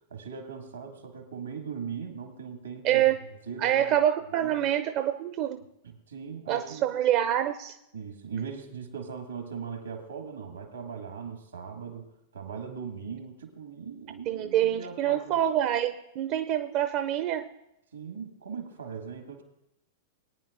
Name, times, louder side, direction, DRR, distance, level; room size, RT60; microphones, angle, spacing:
voice 1, 0.1-3.1 3.5-4.0 4.3-4.7 5.8-6.8 7.9-15.4 17.9-19.4, right 6 dB, 85° right, 4 dB, 2.1 m, -39 dB
voice 2, 3.6-5.6 6.5-7.8 14.3-17.5, right 11 dB, 45° right, 8 dB, 0.5 m, -26 dB
21.5 x 9.4 x 2.6 m, 0.84 s
figure-of-eight pair, 100°, 0 cm